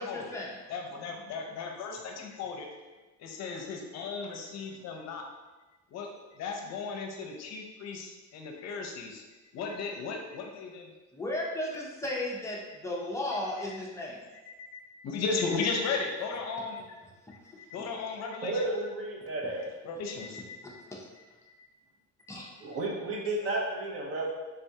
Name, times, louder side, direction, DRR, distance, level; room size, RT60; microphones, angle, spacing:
voice 1, 0.0-0.6 11.1-14.2 17.2-17.3 20.6-21.0 22.3-22.5, left 1 dB, 10° left, -4 dB, 0.5 m, -35 dB
voice 2, 0.7-2.8 3.2-5.3 5.9-9.2 9.5-10.9 14.5-16.9 17.6-18.7 19.8-20.6 21.2-21.7 22.3-22.5, left 4 dB, 60° left, 2 dB, 0.6 m, -36 dB
voice 3, 18.4-19.7 22.6-24.3, right 2 dB, 50° right, -2 dB, 0.8 m, -32 dB
3.6 x 3.4 x 2.7 m, 1.2 s
cardioid pair, 150°, 30 cm